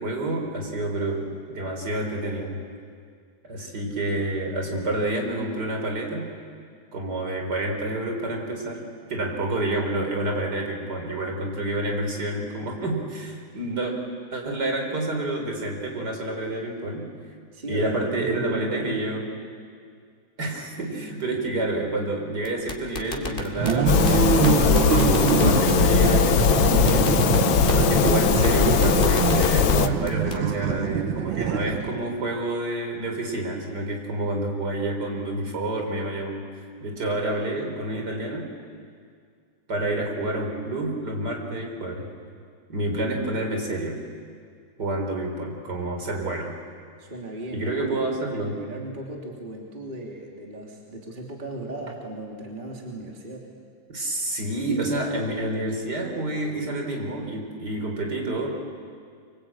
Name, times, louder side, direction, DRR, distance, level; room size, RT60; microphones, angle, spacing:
voice 1, 0.0-2.6 3.5-6.3 6.9-8.8 9.1-13.9 14.3-17.1 17.7-19.3 20.4-27.3 27.7-36.5 36.8-38.5 39.7-42.1 42.7-44.0 44.8-46.5 47.5-48.6 53.9-58.5, right 1 dB, 55° right, 2 dB, 4.4 m, -28 dB
voice 2, 17.5-19.3 47.0-47.9 48.2-53.5, right 1 dB, 25° right, -1 dB, 3.0 m, -37 dB
sound 1, 22.4-23.7 24.1-24.2 24.4-24.5 24.8-25.8 26.1-26.2 26.4-26.5 26.9-27.8 28.1-28.2 28.4-28.5 28.8-29.8 30.1-30.4, left 2 dB, 25° left, 2.4 m, -30 dB
sound 2, 23.6-32.1, right 8 dB, 75° right, 1.8 m, -24 dB
sound 3, 23.9-29.9, left 8 dB, 70° left, 1.6 m, -20 dB
25.5 x 24.5 x 8.7 m, 2.2 s
omnidirectional pair, 2.2 m